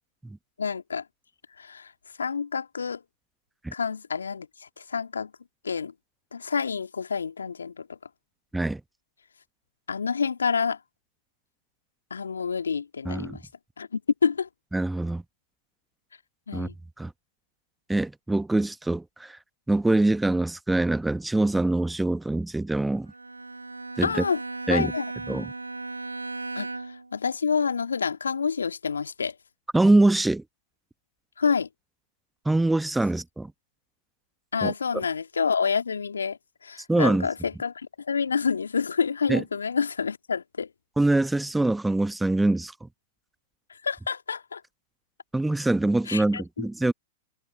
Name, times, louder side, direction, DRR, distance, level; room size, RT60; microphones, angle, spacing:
voice 1, 0.6-1.0 1.6-1.9 2.2-3.0 3.7-5.3 5.6-5.9 6.3-8.0 9.9-10.8 12.1-13.4 13.8-14.5 16.5-16.7 24.0-24.4 24.7-25.1 26.6-29.4 31.4-31.7 34.5-40.7 43.8-44.6 46.1-46.7, left 6 dB, 75° left, 2.1 m, -28 dB
voice 2, 13.0-13.4 14.7-15.2 16.5-16.7 17.0-17.1 17.9-19.4 19.7-23.1 24.0-24.2 24.7-24.9 25.3-25.5 29.7-30.4 32.4-33.5 34.6-34.7 36.9-37.3 39.3-39.4 41.0-42.7 45.3-46.9, right 2 dB, 5° right, 1.0 m, -24 dB
Bowed string instrument, 23.1-27.1, right 3 dB, 85° right, 1.9 m, -36 dB
figure-of-eight pair, 100°, 0 cm